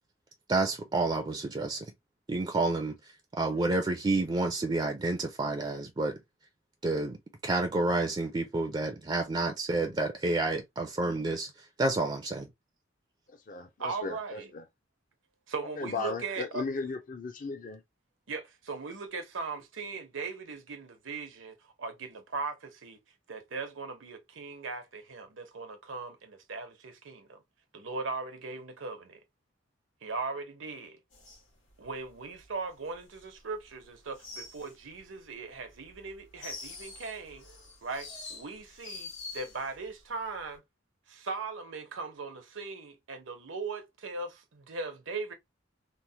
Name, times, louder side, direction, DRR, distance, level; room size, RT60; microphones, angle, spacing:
voice 1, 0.5-1.9 2.3-2.9 3.4-6.2 6.8-7.2 7.4-11.5 11.8-12.5, right 2 dB, 25° right, 0.4 m, -29 dB
voice 2, 13.3-14.6 15.8-17.8, left 3 dB, 45° left, 0.5 m, -37 dB
voice 3, 13.8-14.5 15.5-16.6 18.3-23.0 23.3-27.4 27.7-29.2 30.0-31.0 31.8-37.5 37.8-40.6 41.1-45.3, right 4 dB, 85° right, 0.8 m, -39 dB
sound 1, 31.1-33.7 33.9-35.2 35.6-39.9 40.1-40.6, left 3 dB, 85° left, 1.4 m, -46 dB
3.1 x 2.1 x 2.7 m
head